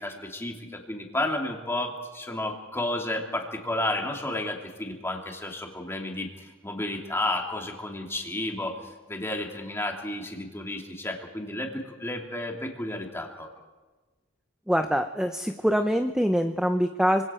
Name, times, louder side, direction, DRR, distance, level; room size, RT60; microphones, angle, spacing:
voice 1, 0.0-13.5, left 1 dB, 15° left, 1 dB, 2.8 m, -32 dB
voice 2, 14.7-17.2, equal, 5° right, 6 dB, 0.6 m, -24 dB
25.5 x 24.5 x 4.5 m, 1.2 s
head